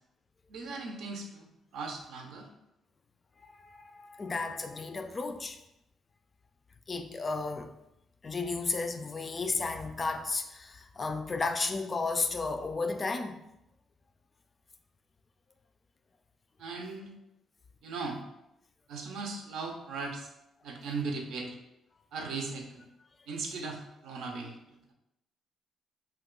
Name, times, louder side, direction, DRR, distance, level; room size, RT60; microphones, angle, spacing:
voice 1, 0.5-2.5 16.6-17.1 17.8-18.2 18.9-20.3 20.6-21.5 22.1-22.8 23.3-24.6, right 4 dB, 80° right, 0.5 m, -38 dB
voice 2, 3.5-5.6 6.9-7.7 8.2-13.4, left 3 dB, 35° left, 0.3 m, -33 dB
2.8 x 2.2 x 3.7 m
cardioid pair, 90°, 0 cm